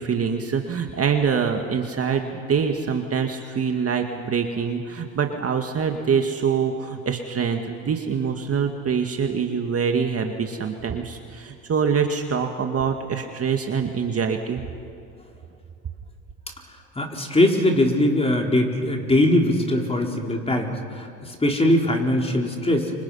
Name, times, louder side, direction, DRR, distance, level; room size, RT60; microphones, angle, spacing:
voice 1, 0.0-14.6, right 6 dB, 35° right, 4 dB, 2.0 m, -25 dB
voice 2, 17.0-22.9, left 1 dB, 15° left, 1 dB, 4.2 m, -21 dB
29.0 x 26.0 x 5.7 m, 2.6 s
supercardioid pair, 90°, 43 cm